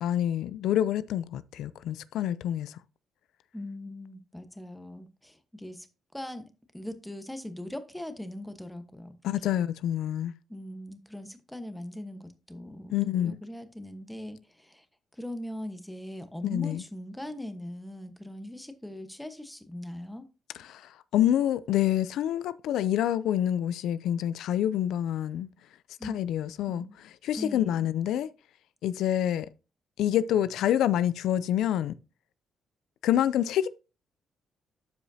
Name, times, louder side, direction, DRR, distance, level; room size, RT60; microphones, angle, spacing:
voice 1, 0.0-2.8 9.2-10.3 12.9-13.4 16.4-16.8 20.6-25.5 26.0-26.9 27.2-28.3 28.8-29.5 30.0-31.9 33.0-33.7, left 11 dB, 80° left, 0.4 m, -27 dB
voice 2, 3.5-5.9 6.1-9.2 10.5-14.8 15.2-20.3 26.0-26.2 26.7-26.9 27.4-27.9, left 1 dB, 5° left, 1.2 m, -40 dB
12.5 x 4.9 x 2.8 m
cardioid pair, 90°, 0 cm